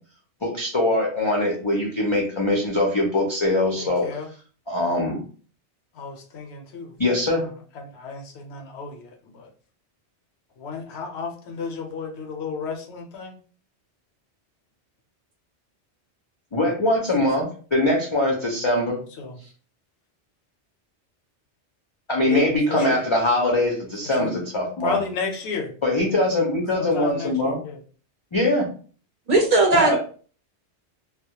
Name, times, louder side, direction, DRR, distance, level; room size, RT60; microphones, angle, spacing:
voice 1, 0.4-4.1 4.7-5.2 7.0-7.5 16.5-19.0 22.1-25.0 25.8-27.6 28.3-28.7 29.7-30.0, left 1 dB, 35° left, -2 dB, 0.5 m, -22 dB
voice 2, 3.8-4.3 5.9-6.9 7.8-9.5 10.6-13.4 19.2-19.4 22.2-23.0 24.0-24.3 24.8-25.7 26.8-27.8, left 5 dB, 75° left, 2 dB, 0.9 m, -33 dB
voice 3, 29.3-30.0, right 2 dB, 45° right, -1 dB, 0.7 m, -17 dB
2.2 x 2.0 x 2.8 m, 0.41 s
omnidirectional pair, 1.2 m